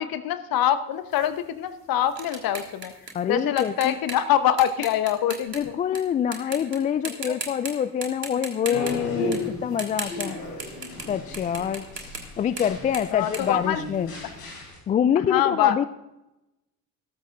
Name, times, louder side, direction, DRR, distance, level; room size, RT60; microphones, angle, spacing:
voice 1, 0.0-2.9 3.3-5.8 7.1-7.3 8.7-8.8 9.1-9.5 13.1-13.8 15.3-15.9, left 10 dB, 45° left, 12 dB, 1.1 m, -25 dB
sound 1, 1.1-6.0 6.3-6.8 7.0-7.7 8.0-11.1 11.3-14.3, right 3 dB, 85° right, 1.5 m, -37 dB
voice 2, 3.1-4.0 5.5-10.4 11.1-11.9 12.4-14.1 14.9-15.8, left 8 dB, 20° left, 15 dB, 0.3 m, -26 dB
sound 2, 8.7-14.8, left 1 dB, 75° left, 3.8 m, -35 dB
14.0 x 13.0 x 3.8 m, 0.91 s
figure-of-eight pair, 50°, 48 cm